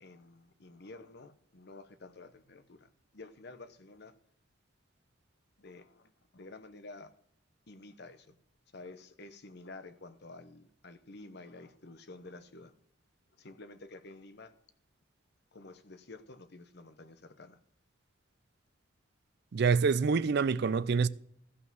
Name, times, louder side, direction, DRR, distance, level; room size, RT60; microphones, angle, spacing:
voice 1, 0.0-4.1 5.6-7.1 7.7-8.4 8.7-12.7 13.4-14.5 15.5-17.6, left 2 dB, 60° left, 0.9 m, -50 dB
voice 2, 19.5-21.1, right 5 dB, 55° right, 0.4 m, -26 dB
14.5 x 5.8 x 6.1 m
head